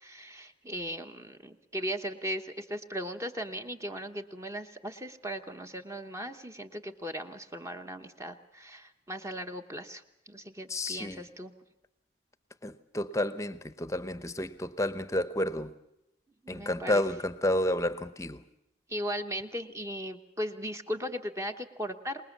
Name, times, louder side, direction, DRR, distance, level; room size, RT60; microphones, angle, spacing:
voice 1, 0.0-11.5 16.4-17.0 18.9-22.3, equal, 15° right, 1.1 m, -38 dB
voice 2, 10.7-11.3 12.6-15.7 16.5-18.4, left 1 dB, 15° left, 0.8 m, -31 dB
25.5 x 20.5 x 7.3 m
head